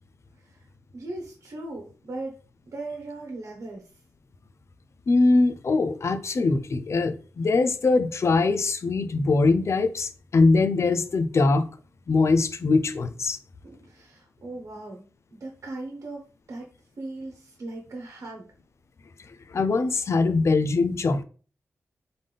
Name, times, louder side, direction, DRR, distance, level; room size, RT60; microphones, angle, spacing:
voice 1, 0.9-2.4 2.7-3.8 13.6-15.0 15.3-16.7 17.0-18.5, right 2 dB, 65° right, 1.1 m, -38 dB
voice 2, 5.1-11.7 12.1-13.4 19.5-21.2, left 3 dB, 55° left, 0.5 m, -22 dB
3.9 x 3.7 x 3.3 m
cardioid pair, 55°, 6 cm